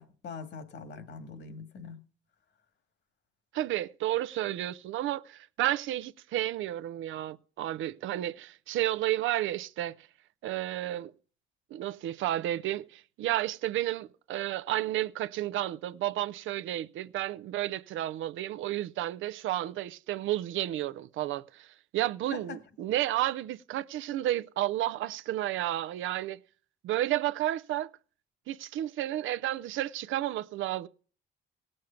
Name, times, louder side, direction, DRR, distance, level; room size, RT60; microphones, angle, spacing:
voice 1, 0.0-2.0 22.3-22.6, left 5 dB, 65° left, 1.8 m, -43 dB
voice 2, 3.5-10.1 10.4-11.1 11.7-26.4 26.8-27.9 28.5-30.9, right 14 dB, 80° right, 0.5 m, -32 dB
17.5 x 6.5 x 5.7 m
cardioid pair, 90°, 20 cm